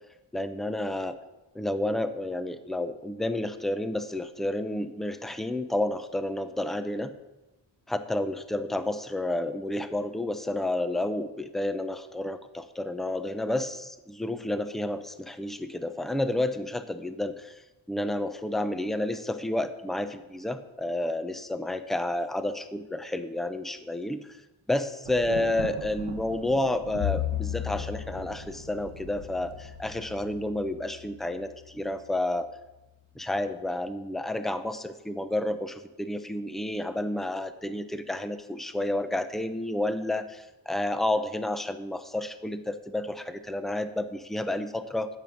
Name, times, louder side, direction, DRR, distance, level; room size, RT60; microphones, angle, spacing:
voice 1, 0.3-1.2 1.5-7.1 7.9-17.6 17.9-24.4 24.7-32.5 33.2-45.1, left 1 dB, ahead, 10 dB, 0.7 m, -30 dB
Thunder, 25.1-30.4, right 8 dB, 85° right, 0.8 m, -42 dB
Bowed string instrument, 27.0-31.4, left 15 dB, 70° left, 0.8 m, -35 dB
8.9 x 7.9 x 5.9 m, 1.0 s
wide cardioid pair, 80°, 47 cm